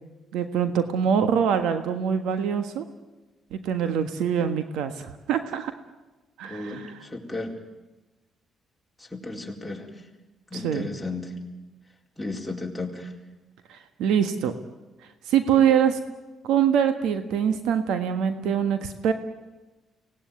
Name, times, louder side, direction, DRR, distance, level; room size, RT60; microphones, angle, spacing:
voice 1, 0.3-2.9 3.5-5.7 6.4-6.9 10.5-10.9 13.7-14.5 15.3-16.0 16.4-19.1, right 8 dB, 90° right, 9 dB, 1.5 m, -24 dB
voice 2, 6.4-7.5 9.0-9.9 10.5-11.3 12.2-13.1, left 2 dB, ahead, -1 dB, 4.4 m, -34 dB
24.0 x 18.5 x 9.6 m, 1.1 s
cardioid pair, 90°, 0 cm